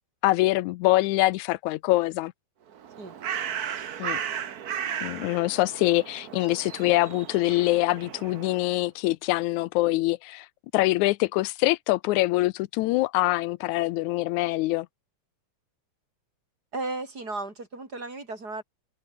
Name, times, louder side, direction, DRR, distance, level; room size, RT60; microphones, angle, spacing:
voice 1, 0.2-2.3 4.0-4.2 5.0-10.5 10.7-14.9, left 18 dB, 90° left, 2.0 m, -24 dB
Bird, 2.7-8.8, right 8 dB, 75° right, 0.8 m, -35 dB
voice 2, 16.7-18.6, right 2 dB, 30° right, 4.7 m, -35 dB
omnidirectional pair, 3.4 m